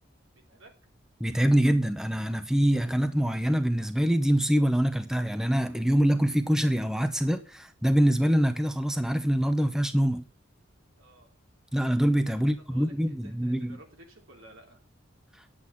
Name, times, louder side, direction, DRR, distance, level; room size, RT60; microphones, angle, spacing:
voice 1, 0.3-0.7 11.0-11.3 12.4-14.8, right 1 dB, 85° right, 3.4 m, -54 dB
voice 2, 1.2-10.2 11.7-13.8 15.3-15.4, equal, 5° right, 0.7 m, -25 dB
9.6 x 8.6 x 5.7 m
head